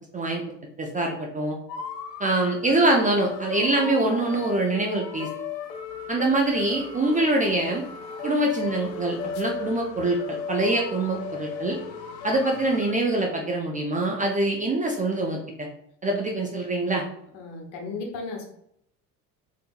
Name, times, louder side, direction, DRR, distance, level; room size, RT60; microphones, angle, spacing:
voice 1, 0.8-1.6 2.2-5.3 6.1-7.8 8.2-11.8 12.2-15.4 16.0-17.0, right 2 dB, 15° right, 0 dB, 0.4 m, -24 dB
sound 1, 1.7-12.9, left 5 dB, 80° left, 0.6 m, -36 dB
voice 2, 17.3-18.5, left 3 dB, 60° left, 1 dB, 1.1 m, -35 dB
3.4 x 2.9 x 2.4 m, 0.73 s
figure-of-eight pair, 60°, 50 cm